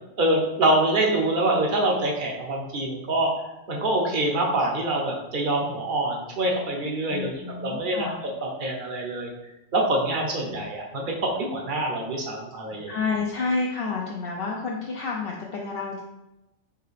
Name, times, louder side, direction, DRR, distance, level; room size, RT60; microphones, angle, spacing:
voice 1, 0.2-3.3 3.7-7.3 7.6-8.1 8.4-9.3 9.7-12.9, right 1 dB, 50° right, 0 dB, 0.9 m, -25 dB
voice 2, 7.1-8.2 10.4-10.6 12.9-16.0, left 4 dB, 65° left, -2 dB, 0.7 m, -29 dB
4.8 x 2.8 x 3.2 m, 0.95 s
omnidirectional pair, 1.2 m